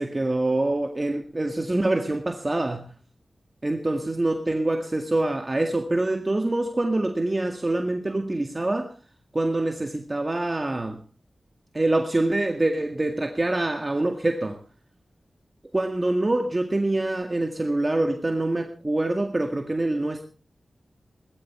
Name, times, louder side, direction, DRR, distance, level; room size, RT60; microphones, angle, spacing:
voice 1, 0.0-2.9 3.6-8.9 9.3-11.0 11.7-14.6 15.7-20.2, right 2 dB, 30° right, 1.9 m, -25 dB
19.5 x 13.5 x 4.4 m
wide cardioid pair, 90°, 0 cm